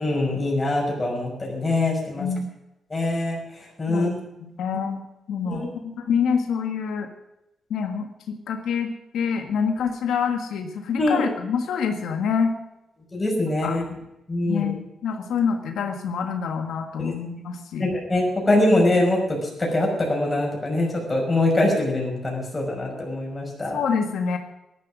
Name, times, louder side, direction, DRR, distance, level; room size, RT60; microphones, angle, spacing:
voice 1, 0.0-2.3 2.9-3.4 3.8-4.1 5.4-5.7 11.0-11.2 13.1-13.8 14.3-14.7 17.0-17.1 17.8-23.8, left 2 dB, 20° left, -1 dB, 5.8 m, -23 dB
voice 2, 2.2-2.5 3.9-7.1 7.7-12.6 13.6-13.9 14.5-17.9 23.7-24.4, left 6 dB, 85° left, 5 dB, 1.7 m, -26 dB
17.5 x 12.0 x 6.2 m, 0.90 s
wide cardioid pair, 150°, 0 cm